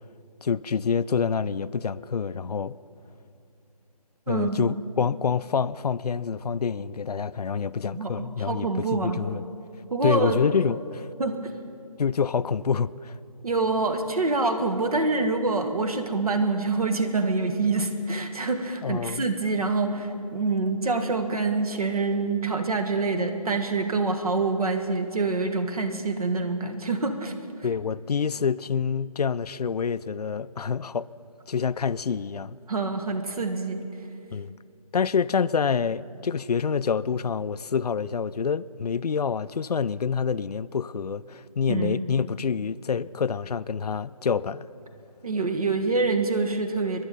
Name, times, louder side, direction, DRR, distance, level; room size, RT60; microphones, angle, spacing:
voice 1, 0.4-2.7 4.3-9.5 10.0-11.1 12.0-13.2 18.8-19.3 27.6-31.1 31.5-32.6 34.3-34.5 34.9-44.7, left 6 dB, 80° left, 0.4 m, -27 dB
voice 2, 4.3-4.7 7.9-9.2 9.9-10.4 11.2-11.4 13.4-27.4 32.7-33.8 41.7-42.0 45.2-47.0, right 3 dB, 65° right, 1.5 m, -26 dB
23.5 x 11.0 x 4.1 m
figure-of-eight pair, 165°, 20 cm